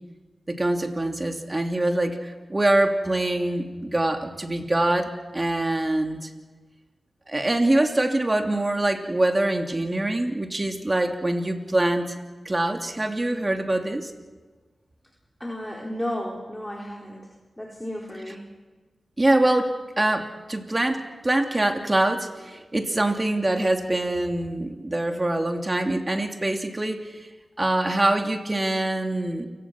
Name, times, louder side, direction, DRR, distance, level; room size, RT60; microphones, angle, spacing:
voice 1, 0.5-6.3 7.3-12.1 12.4-14.1 19.2-27.2 27.6-29.5, right 1 dB, 30° right, 4 dB, 2.9 m, -24 dB
voice 2, 15.4-18.5, equal, 15° left, -2 dB, 4.3 m, -33 dB
29.0 x 18.0 x 6.1 m, 1.3 s
cardioid pair, 40°, 0 cm